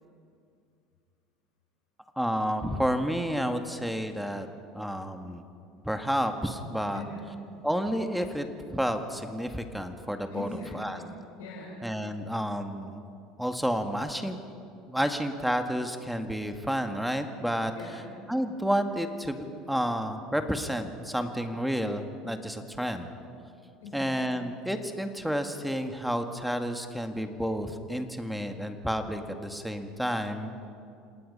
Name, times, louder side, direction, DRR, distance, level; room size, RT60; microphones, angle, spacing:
voice 1, 2.2-4.5 4.8-5.4 5.9-7.0 7.6-8.5 8.7-10.5 10.7-11.0 11.8-13.0 13.4-14.4 14.9-17.7 18.3-23.1 23.9-30.5, equal, ahead, 6 dB, 1.9 m, -30 dB
voice 2, 6.9-7.3 10.3-11.8 17.7-18.1 23.8-24.4, left 2 dB, 85° left, -2 dB, 4.9 m, -41 dB
27.5 x 18.5 x 5.5 m, 2.4 s
hypercardioid pair, 80°, 0 cm